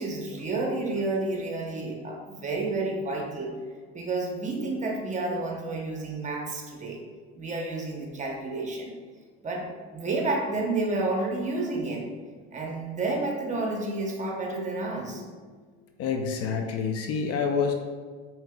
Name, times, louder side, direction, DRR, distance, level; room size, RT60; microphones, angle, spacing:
voice 1, 0.0-3.5 3.9-7.0 7.3-8.9 9.4-12.0 12.5-15.2, right 2 dB, 25° right, 0 dB, 0.8 m, -30 dB
voice 2, 16.0-17.7, left 5 dB, 50° left, 4 dB, 0.5 m, -27 dB
5.5 x 2.8 x 2.3 m, 1.5 s
supercardioid pair, 90°, 31 cm